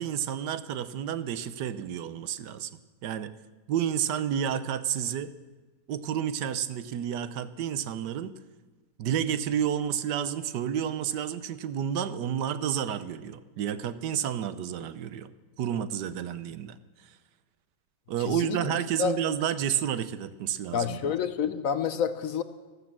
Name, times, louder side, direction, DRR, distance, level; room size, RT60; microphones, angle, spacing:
voice 1, 0.0-2.7 3.0-3.3 3.7-5.3 5.9-8.4 9.0-15.3 15.6-16.8 17.0-17.1 18.1-21.1, right 9 dB, 90° right, 14 dB, 1.4 m, -30 dB
voice 2, 18.3-18.7 19.0-19.2 20.7-22.4, left 7 dB, 60° left, 12 dB, 1.0 m, -28 dB
13.5 x 13.5 x 7.4 m, 1.2 s
omnidirectional pair, 1.8 m